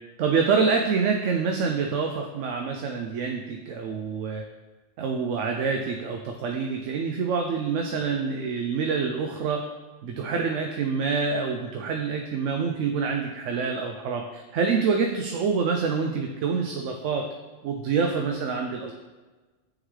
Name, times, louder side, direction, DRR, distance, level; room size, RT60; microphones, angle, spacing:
voice 1, 0.2-4.4 5.0-9.7 10.0-17.3 17.6-18.9, right 5 dB, 80° right, 3 dB, 0.9 m, -26 dB
9.0 x 3.9 x 3.2 m, 1.3 s
omnidirectional pair, 1.3 m